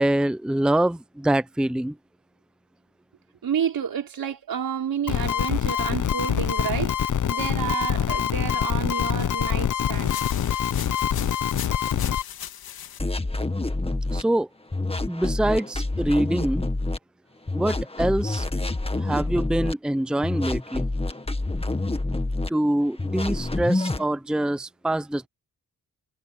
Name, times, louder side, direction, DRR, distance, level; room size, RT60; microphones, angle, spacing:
voice 1, 0.0-1.9 14.1-14.5 15.1-16.6 17.5-18.5 19.0-20.9 22.5-25.3, right 1 dB, ahead, 0.7 m, -24 dB
voice 2, 3.4-10.1, right 8 dB, 75° right, 5.2 m, -30 dB
sound 1, 5.1-12.2, left 9 dB, 55° left, 1.0 m, -25 dB
sound 2, 9.9-13.0, left 10 dB, 90° left, 2.2 m, -38 dB
sound 3, 13.0-14.2 14.7-17.0 17.5-19.7 20.2-22.5 23.0-24.0, left 2 dB, 15° left, 2.0 m, -27 dB
cardioid pair, 70°, 35 cm